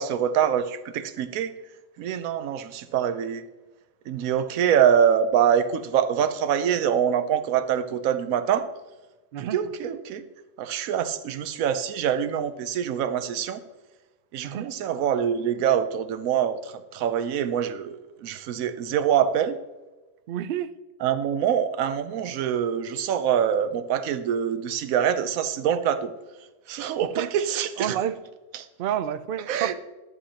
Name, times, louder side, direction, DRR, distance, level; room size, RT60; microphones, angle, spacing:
voice 1, 0.0-1.5 2.0-3.4 4.1-8.7 9.4-10.2 10.6-13.6 14.3-19.6 21.0-26.1 26.7-28.0 28.5-28.7 29.5-29.7, right 8 dB, 85° right, 11 dB, 1.1 m, -25 dB
voice 2, 20.3-20.8 27.2-27.3 27.8-28.2 28.8-29.7, right 10 dB, 65° right, 12 dB, 0.5 m, -29 dB
11.5 x 9.7 x 2.8 m, 1.1 s
omnidirectional pair, 1.4 m